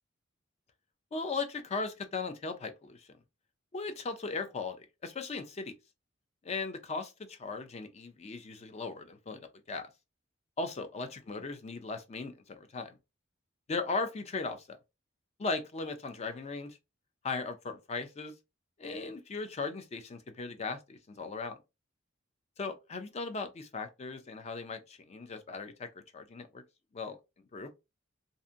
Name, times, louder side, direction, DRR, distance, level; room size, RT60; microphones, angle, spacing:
voice 1, 1.1-3.1 3.7-5.7 6.4-9.9 10.6-13.0 13.7-14.8 15.4-16.8 17.2-18.3 18.8-21.6 22.6-26.6 26.9-27.2 27.5-27.7, left 4 dB, 35° left, 0.4 m, -38 dB
2.7 x 2.5 x 2.4 m
head